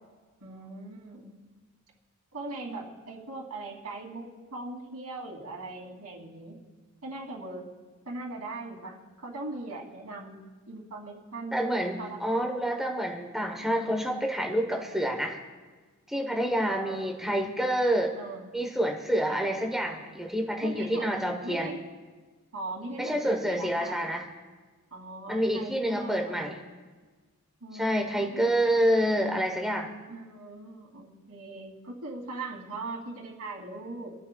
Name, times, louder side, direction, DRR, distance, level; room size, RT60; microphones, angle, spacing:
voice 1, 0.4-1.5 2.3-6.6 7.0-7.7 8.1-10.4 10.7-11.6 12.0-12.5 13.6-14.0 16.6-17.1 18.2-18.5 19.2-19.4 20.6-21.8 22.5-24.0 24.9-26.4 27.6-28.4 28.8-28.9 30.1-34.1, right 2 dB, 90° right, -1 dB, 2.7 m, -40 dB
voice 2, 11.5-15.4 16.1-18.2 18.5-21.7 23.0-24.3 25.3-26.6 27.7-29.9, equal, ahead, 2 dB, 1.0 m, -28 dB
26.0 x 13.0 x 2.3 m, 1.4 s
head